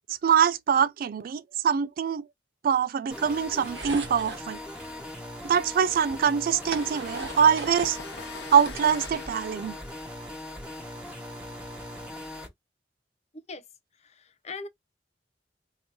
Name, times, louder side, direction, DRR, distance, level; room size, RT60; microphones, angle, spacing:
voice 1, 0.2-2.3 2.6-4.6 5.4-8.0 8.5-9.7, right 7 dB, 55° right, 0.3 m, -24 dB
sound 1, 3.1-12.5, left 1 dB, 5° right, 1.5 m, -40 dB
sound 2, 3.6-4.5 5.6-5.7 6.1-8.0 8.4-9.4, right 4 dB, 80° right, 1.2 m, -39 dB
sound 3, 6.4-11.8, left 4 dB, 85° left, 1.1 m, -44 dB
voice 2, 14.0-14.7, left 4 dB, 40° left, 0.6 m, -40 dB
2.9 x 2.8 x 4.4 m
head